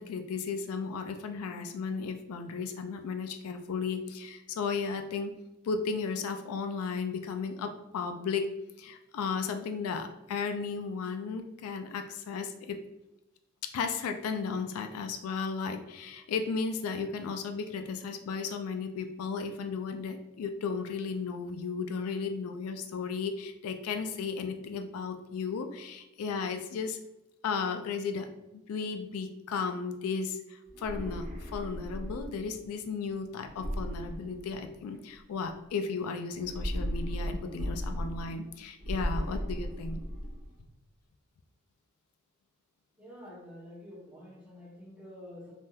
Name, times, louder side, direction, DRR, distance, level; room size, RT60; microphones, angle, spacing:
voice 1, 0.0-5.3 5.6-8.5 8.8-12.8 13.6-27.0 27.4-28.3 28.5-40.0, left 5 dB, 85° left, 6 dB, 0.3 m, -35 dB
sound 1, 30.7-32.6 33.5-35.0 36.3-38.5 38.8-40.5, equal, 30° right, 0.8 m, -36 dB
voice 2, 43.0-45.5, left 1 dB, 5° right, -8 dB, 1.1 m, -48 dB
3.4 x 2.7 x 2.2 m, 0.89 s
head